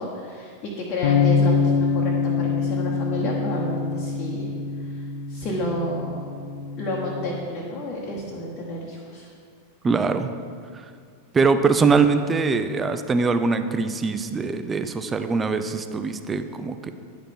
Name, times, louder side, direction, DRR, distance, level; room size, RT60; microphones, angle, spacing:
voice 1, 0.0-4.5 4.8-5.0 5.3-6.2 6.8-9.3, left 1 dB, 35° left, -3 dB, 1.1 m, -30 dB
sound 1, 1.0-7.3, left 5 dB, 50° left, 0.7 m, -25 dB
voice 2, 9.8-10.3 10.7-10.8 11.3-16.9, right 4 dB, 15° right, 9 dB, 0.4 m, -22 dB
9.9 x 5.1 x 4.4 m, 2.2 s
figure-of-eight pair, 90°, 0 cm